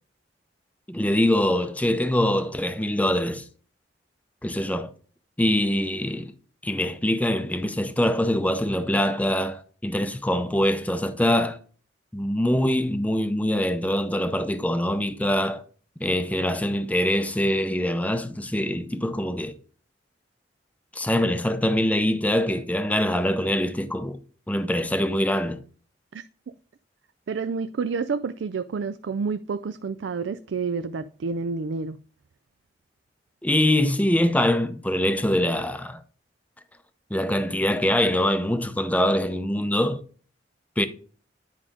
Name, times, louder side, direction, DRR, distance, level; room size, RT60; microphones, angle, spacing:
voice 1, 0.9-3.4 4.4-4.9 5.4-6.3 6.6-11.6 12.1-15.6 16.0-19.5 20.9-24.2 24.5-25.6 33.4-36.0 37.1-40.0 40.8-40.9, left 1 dB, 10° left, 0.6 m, -24 dB
voice 2, 27.3-32.0, right 5 dB, 80° right, 0.4 m, -29 dB
9.9 x 4.9 x 3.7 m
head